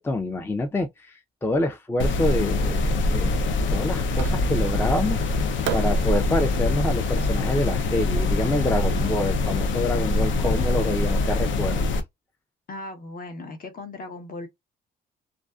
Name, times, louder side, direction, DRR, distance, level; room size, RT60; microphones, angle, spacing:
voice 1, 0.0-3.3 3.7-5.2 5.7-11.9, left 1 dB, 10° left, 0.4 m, -27 dB
sound 1, 2.0-12.0, left 2 dB, 70° left, 0.6 m, -24 dB
Fireworks, 4.2-4.8 5.6-8.8, right 10 dB, 70° right, 0.4 m, -37 dB
voice 2, 12.7-14.5, left 2 dB, 45° left, 0.9 m, -37 dB
2.5 x 2.4 x 2.2 m
cardioid pair, 90°, 20 cm